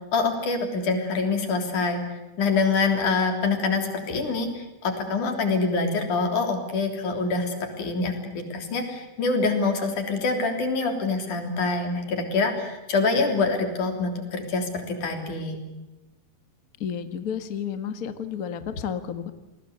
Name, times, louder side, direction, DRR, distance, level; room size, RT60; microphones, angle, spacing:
voice 1, 0.1-2.0 2.4-15.6, left 3 dB, 55° left, 4 dB, 4.8 m, -25 dB
voice 2, 16.8-19.3, left 8 dB, 70° left, 9 dB, 0.8 m, -31 dB
29.0 x 20.5 x 8.1 m, 1.0 s
omnidirectional pair, 4.3 m